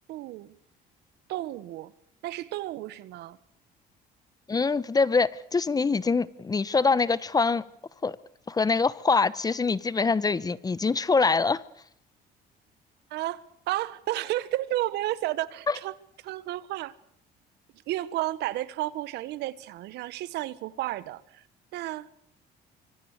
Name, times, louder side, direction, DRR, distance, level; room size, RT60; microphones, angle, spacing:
voice 1, 0.1-0.5 1.3-1.9 2.2-3.4 13.1-15.9 16.2-16.9 17.9-21.4 21.7-22.1, right 15 dB, 80° right, 1.3 m, -32 dB
voice 2, 4.5-7.6 8.0-8.2 8.5-11.6 15.7-15.8, left 4 dB, 20° left, 1.0 m, -24 dB
25.0 x 24.0 x 6.7 m
cardioid pair, 110°, 17 cm